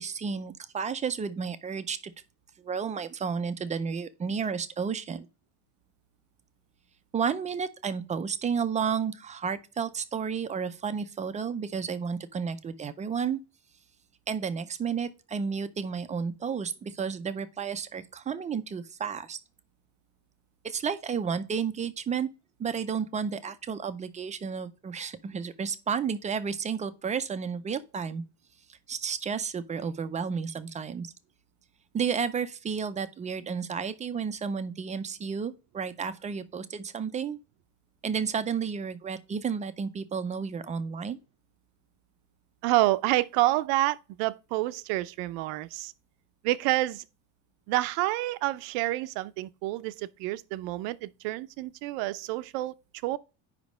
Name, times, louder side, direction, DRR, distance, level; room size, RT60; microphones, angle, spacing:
voice 1, 0.0-2.1 2.6-5.3 7.1-13.4 14.3-19.4 20.6-22.3 22.6-28.2 28.9-31.1 31.9-37.4 38.0-41.2, right 6 dB, 20° right, 0.4 m, -32 dB
voice 2, 42.6-45.9 46.4-47.0 47.7-52.7 53.0-53.2, right 17 dB, 80° right, 0.7 m, -28 dB
5.2 x 5.1 x 6.2 m
cardioid pair, 150°, 41 cm